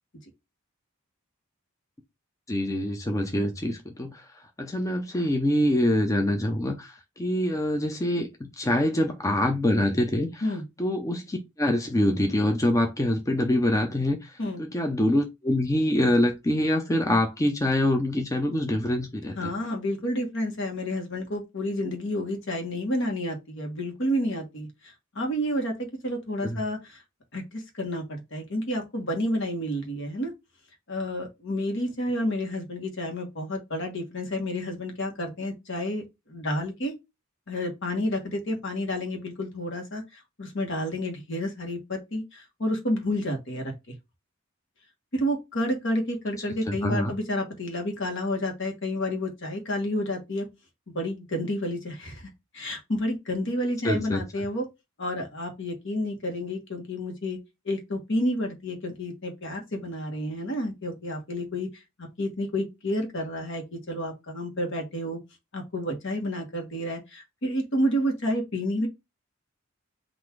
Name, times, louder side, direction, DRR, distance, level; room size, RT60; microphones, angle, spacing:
voice 1, 2.5-4.2 4.6-10.4 10.8-19.5 26.4-26.6 46.7-47.1 53.8-54.2, left 1 dB, 15° left, 0.5 m, -25 dB
voice 2, 19.3-24.7 25.1-27.0 27.3-30.3 30.9-36.9 37.5-40.0 40.4-43.7 45.1-50.4 50.9-52.3 52.5-54.7 55.0-57.4 57.6-61.7 62.0-65.2 65.5-68.9, left 1 dB, 60° left, 1.3 m, -30 dB
3.9 x 2.5 x 4.5 m
head